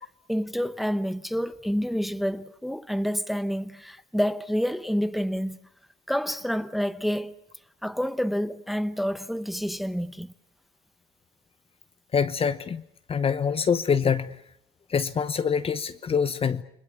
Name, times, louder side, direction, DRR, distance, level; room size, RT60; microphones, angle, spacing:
voice 1, 0.3-5.6 6.1-7.3 7.8-10.3, equal, ahead, 0.9 m, -28 dB
voice 2, 12.1-12.8 13.1-14.4 14.9-16.6, left 6 dB, 35° left, 1.0 m, -25 dB
30.0 x 21.5 x 7.4 m
cardioid pair, 110°, 17 cm